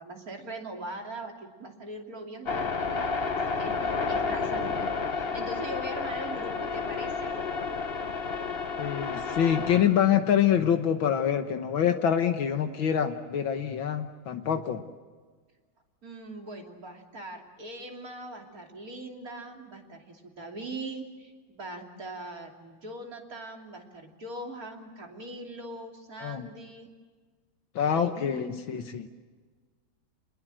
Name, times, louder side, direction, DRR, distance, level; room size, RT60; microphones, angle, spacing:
voice 1, 0.0-7.3 16.0-26.9 27.8-28.8, right 1 dB, 45° right, 2 dB, 3.3 m, -41 dB
sound 1, 2.5-10.1, left 4 dB, 35° left, 1.2 m, -31 dB
voice 2, 8.8-14.8 26.2-26.5 27.8-29.1, left 9 dB, 75° left, 7 dB, 1.9 m, -26 dB
29.0 x 20.5 x 7.6 m, 1.5 s
omnidirectional pair, 2.2 m